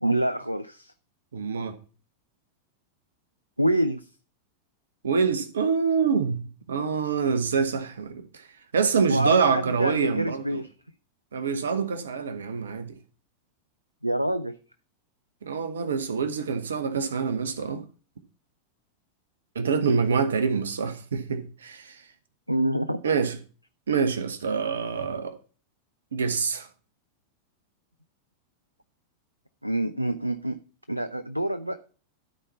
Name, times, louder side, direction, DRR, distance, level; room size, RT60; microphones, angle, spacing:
voice 1, 0.0-0.9 3.6-4.1 9.1-10.7 14.0-14.6 22.5-23.0 29.6-30.6 30.9-31.8, right 1 dB, 90° right, 0.4 m, -26 dB
voice 2, 1.3-1.8 5.0-8.5 8.7-10.6 11.3-12.9 15.4-17.9 19.5-22.0 23.0-23.4 23.9-25.4 26.1-26.7, right 5 dB, 65° right, 1.1 m, -26 dB
12.5 x 4.4 x 5.6 m
figure-of-eight pair, 90°, 0 cm